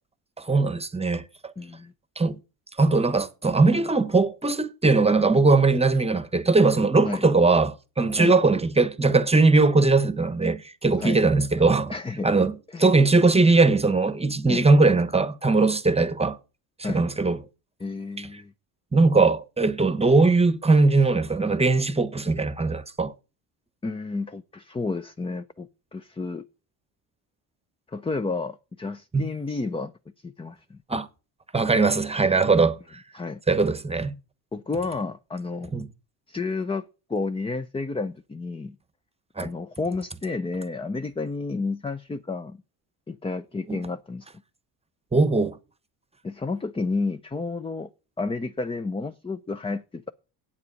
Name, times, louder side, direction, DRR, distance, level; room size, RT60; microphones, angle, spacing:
voice 1, 0.4-1.2 2.2-2.4 2.8-11.9 12.2-12.5 12.8-16.4 16.8-17.4 18.9-23.1 29.1-29.2 30.9-31.1 31.5-32.8 33.5-34.1 35.7-35.9 39.4-39.5 43.7-43.8 45.1-45.6, right 3 dB, 15° right, 1.0 m, -20 dB
voice 2, 1.6-1.9 7.0-7.2 8.1-8.3 11.0-11.2 11.9-12.3 12.7-12.9 14.5-14.7 16.8-17.0 17.8-18.5 23.8-26.5 27.9-29.9 30.2-30.8 33.1-33.4 34.5-35.7 36.3-38.8 39.4-42.6 43.1-44.3 46.2-47.9 48.2-50.1, left 3 dB, 15° left, 0.6 m, -31 dB
9.6 x 8.5 x 5.3 m
supercardioid pair, 90°, 41 cm